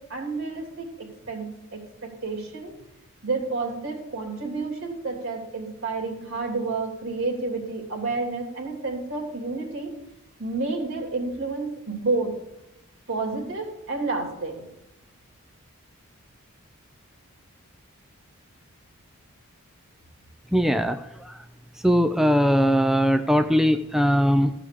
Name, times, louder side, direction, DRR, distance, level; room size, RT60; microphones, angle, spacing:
voice 1, 0.1-0.9 1.3-2.8 3.2-9.9 10.4-12.3 13.1-14.7, right 3 dB, 60° right, 1 dB, 3.1 m, -30 dB
voice 2, 20.5-21.4 21.8-24.5, equal, ahead, 8 dB, 0.4 m, -20 dB
14.5 x 5.0 x 6.8 m, 0.90 s
head